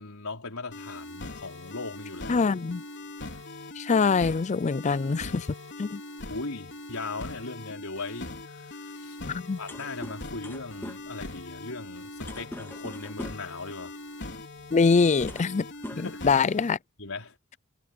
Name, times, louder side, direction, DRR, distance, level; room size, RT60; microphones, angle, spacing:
voice 1, 0.0-2.5 6.3-9.2 9.6-13.9 15.9-16.3 17.0-17.6, left 3 dB, 80° left, 4.7 m, -39 dB
sound 1, 0.7-16.7, left 2 dB, 55° left, 4.0 m, -41 dB
voice 2, 2.3-2.8 3.8-5.5 5.8-6.0 9.3-9.6 14.7-15.7 16.0-16.8, left 4 dB, 35° left, 0.4 m, -24 dB
sound 2, 9.7-13.6 14.6-14.7 15.1-15.6 15.8-16.7, left 1 dB, 10° left, 2.7 m, -42 dB
head